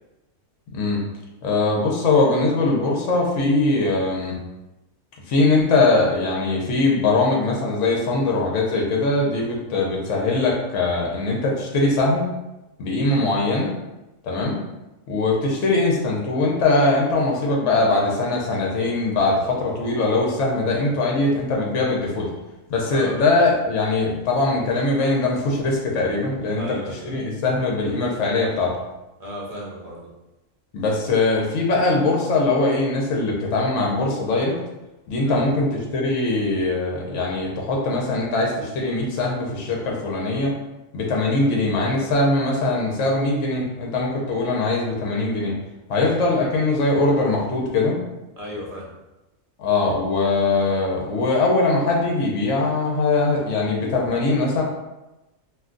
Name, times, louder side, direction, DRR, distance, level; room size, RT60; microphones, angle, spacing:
voice 1, 0.7-1.0 1.4-4.3 5.3-12.3 12.8-13.7 14.2-14.6 15.1-22.3 22.7-26.6 27.1-28.7 30.7-34.6 35.1-35.7 35.9-40.5 40.9-45.5 45.9-48.0 49.6-54.6, left 2 dB, 70° left, -2 dB, 1.0 m, -21 dB
voice 2, 22.9-23.3 26.5-27.2 29.2-30.1 35.2-35.4 48.4-49.0, equal, 40° right, -4 dB, 0.6 m, -35 dB
2.5 x 2.3 x 3.7 m, 1.0 s
omnidirectional pair, 1.4 m